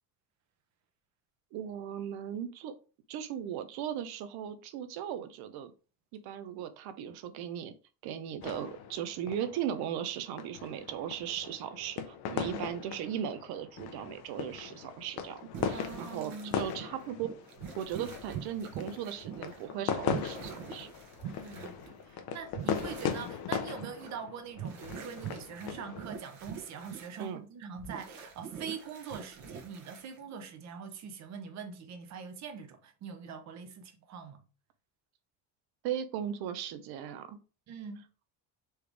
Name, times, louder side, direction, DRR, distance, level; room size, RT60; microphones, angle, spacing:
voice 1, 1.5-2.7 3.1-5.7 6.1-7.7 8.0-17.3 17.8-20.9 27.2-27.5 35.8-37.4, right 9 dB, 80° right, 0.8 m, -37 dB
sound 1, 8.4-26.0, left 8 dB, 70° left, 0.8 m, -39 dB
voice 2, 12.3-12.6 15.7-16.7 21.4-34.5 37.7-38.0, right 6 dB, 45° right, 0.9 m, -43 dB
sound 2, 15.5-19.7 20.0-22.1 22.5-23.4 23.7-24.1 24.5-27.3 27.8-30.3, right 8 dB, 65° right, 1.2 m, -44 dB
4.5 x 3.4 x 3.4 m
cardioid pair, 170°, 38 cm